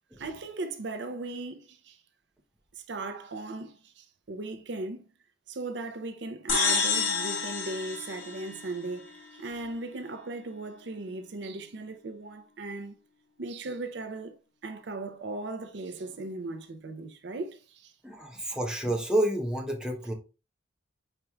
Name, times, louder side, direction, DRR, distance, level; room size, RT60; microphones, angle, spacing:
voice 1, 0.2-2.0 2.8-5.1 5.5-12.9 13.4-14.3 14.6-17.9, right 2 dB, 65° right, 0.6 m, -38 dB
sound 1, 6.5-9.1, left 5 dB, 85° left, 1.3 m, -29 dB
voice 2, 18.0-20.1, right 1 dB, 5° right, 0.8 m, -29 dB
5.1 x 4.5 x 2.3 m
head